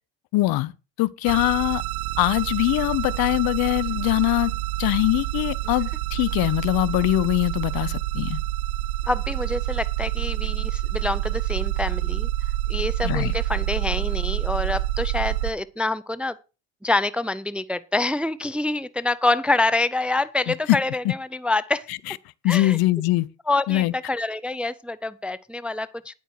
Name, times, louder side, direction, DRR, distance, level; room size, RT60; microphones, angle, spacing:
voice 1, 0.3-0.7 1.0-1.8 2.2-4.5 4.8-8.4 13.0-13.3 20.5-20.8 21.0-21.1 21.9-22.2 22.4-23.3 23.7-23.9, left 18 dB, 55° left, 0.7 m, -22 dB
sound 1, 1.3-15.5, right 15 dB, 80° right, 0.8 m, -27 dB
voice 2, 9.1-12.3 12.7-16.4 16.8-21.9 22.5-22.8 23.5-26.1, left 2 dB, 5° right, 0.4 m, -26 dB
10.0 x 9.0 x 4.7 m
hypercardioid pair, 65°, 43 cm